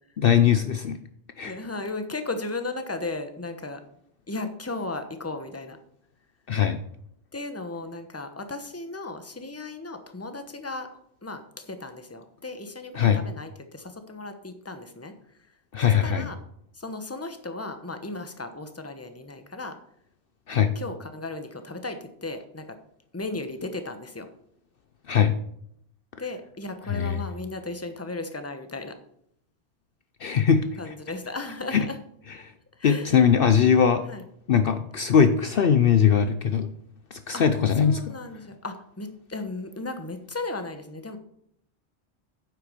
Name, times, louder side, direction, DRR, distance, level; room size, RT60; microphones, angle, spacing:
voice 1, 0.2-1.0 1.4-1.6 6.5-6.8 13.0-13.2 15.7-16.3 20.5-20.7 25.1-25.3 26.9-27.2 30.2-30.7 31.7-31.8 32.4-32.5 32.8-34.1 34.5-36.7 37.1-38.0, left 7 dB, 60° left, 9 dB, 0.8 m, -21 dB
voice 2, 1.4-3.8 4.3-5.8 7.3-15.1 15.8-16.4 16.7-19.8 20.7-22.8 23.1-24.3 26.2-29.0 30.8-32.0 32.8-33.3 34.1-34.2 37.3-37.4 37.8-41.2, left 2 dB, 15° left, 8 dB, 1.0 m, -35 dB
9.4 x 7.8 x 5.1 m, 0.71 s
omnidirectional pair, 1.2 m